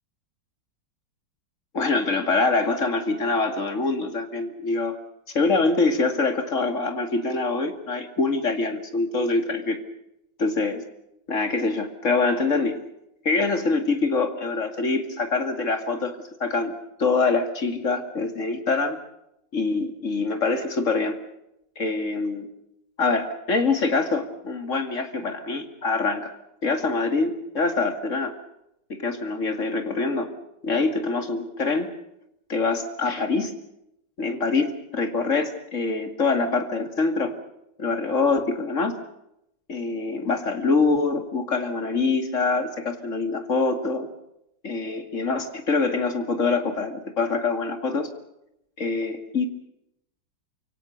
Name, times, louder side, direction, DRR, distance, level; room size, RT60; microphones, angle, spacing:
voice 1, 1.7-5.0 5.3-9.8 10.4-10.8 11.3-12.8 13.2-16.1 16.4-16.7 17.0-19.0 19.5-21.2 21.8-22.5 23.0-26.3 26.6-28.3 28.9-30.3 30.6-31.9 32.5-33.5 34.2-37.3 37.8-39.0 39.7-44.1 44.6-48.1 48.8-49.5, left 3 dB, 40° left, 8 dB, 2.6 m, -24 dB
29.5 x 17.0 x 6.6 m, 0.81 s
omnidirectional pair, 2.0 m